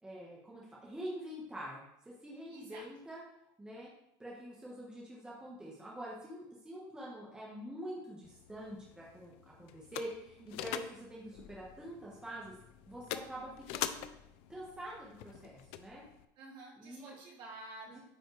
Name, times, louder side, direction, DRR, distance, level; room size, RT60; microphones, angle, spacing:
voice 1, 0.0-3.2 3.6-3.9 4.2-12.5 12.9-14.0 14.5-16.0 16.8-17.2 17.9-18.0, equal, 5° right, -5 dB, 1.5 m, -46 dB
voice 2, 2.5-2.9 10.4-10.8 16.4-18.0, right 2 dB, 45° right, -5 dB, 2.8 m, -50 dB
sound 1, 8.2-16.3, left 12 dB, 65° left, 0.5 m, -45 dB
9.4 x 4.3 x 3.3 m, 0.79 s
supercardioid pair, 125°, 11 cm